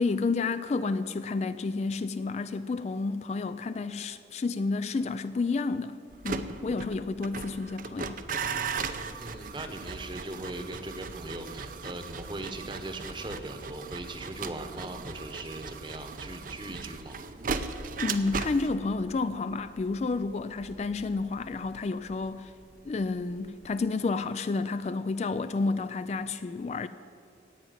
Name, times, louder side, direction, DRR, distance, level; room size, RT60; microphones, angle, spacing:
voice 1, 0.0-6.0 6.2-8.2 18.0-22.5 22.8-26.9, left 3 dB, 35° left, 0.3 m, -30 dB
sound 1, 6.1-23.1 23.4-23.8, right 5 dB, 45° right, 0.6 m, -38 dB
voice 2, 9.2-17.2, right 2 dB, 25° right, 1.0 m, -39 dB
17.0 x 5.9 x 9.4 m
head